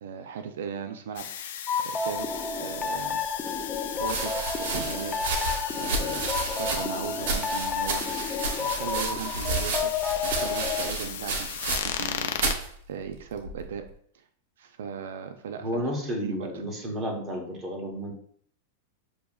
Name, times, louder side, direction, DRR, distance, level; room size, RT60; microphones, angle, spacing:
voice 1, 0.0-1.7 1.9-2.3 2.6-3.2 4.0-4.3 4.6-5.3 5.7-14.3 14.6-15.8 16.2-16.6, right 7 dB, 80° right, 8 dB, 0.4 m, -38 dB
sound 1, 1.2-12.6, left 9 dB, 75° left, 0.5 m, -37 dB
sound 2, 1.7-10.9, left 5 dB, 15° left, 0.3 m, -31 dB
sound 3, 2.9-3.0 4.0-12.1 12.4-12.7 13.4-13.8, right 3 dB, 60° right, 0.9 m, -31 dB
voice 2, 15.6-18.1, equal, 15° right, 0 dB, 1.0 m, -31 dB
6.7 x 2.8 x 2.3 m, 0.63 s
supercardioid pair, 160°, 0 cm